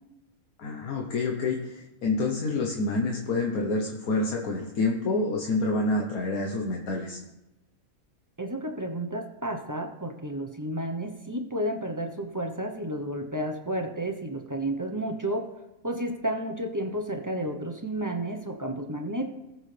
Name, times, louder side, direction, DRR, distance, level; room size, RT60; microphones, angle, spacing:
voice 1, 0.6-7.2, left 3 dB, 80° left, 0 dB, 1.5 m, -28 dB
voice 2, 8.4-15.4 15.8-19.3, right 1 dB, 20° right, 4 dB, 0.6 m, -31 dB
19.0 x 6.5 x 3.3 m, 0.96 s
omnidirectional pair, 1.5 m